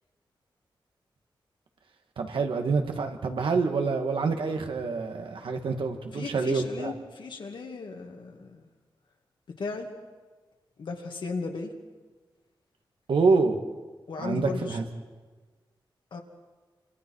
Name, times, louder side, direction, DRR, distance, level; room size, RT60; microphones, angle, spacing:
voice 1, 2.2-6.9 13.1-13.6 14.2-14.8, right 4 dB, 85° right, 4 dB, 2.1 m, -26 dB
voice 2, 6.1-8.7 9.6-9.9 10.8-11.8 14.1-14.8 16.1-16.2, left 4 dB, 65° left, 3 dB, 2.4 m, -36 dB
29.0 x 26.0 x 4.8 m, 1.4 s
wide cardioid pair, 155°, 9 cm